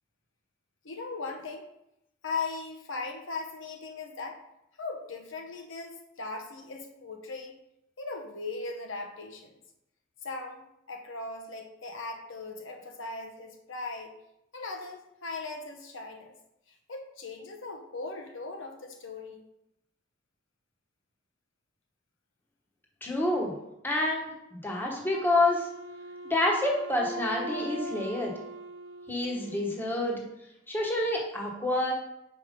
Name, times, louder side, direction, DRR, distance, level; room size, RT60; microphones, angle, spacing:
voice 1, 0.8-1.7 2.2-4.4 4.8-7.6 8.0-9.6 10.2-10.6 10.9-14.2 14.5-16.3 16.9-19.4, left 3 dB, 80° left, 3 dB, 0.9 m, -38 dB
voice 2, 23.0-23.5 23.8-25.7 26.2-28.3 29.1-30.2 30.7-31.9, left 2 dB, 10° left, -1 dB, 1.1 m, -28 dB
Wind instrument woodwind instrument, 25.1-30.1, equal, 85° right, 0.6 m, -41 dB
5.2 x 4.6 x 5.1 m, 0.84 s
head